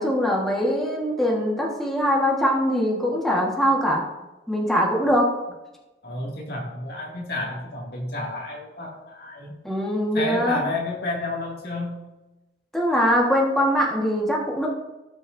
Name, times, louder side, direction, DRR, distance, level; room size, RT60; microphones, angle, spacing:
voice 1, 0.0-4.0 4.5-5.3 9.6-10.6 12.7-14.7, equal, ahead, -3 dB, 1.5 m, -22 dB
voice 2, 6.0-9.5 10.1-12.0, left 2 dB, 60° left, -2 dB, 2.2 m, -30 dB
17.5 x 6.2 x 2.7 m, 1.0 s
head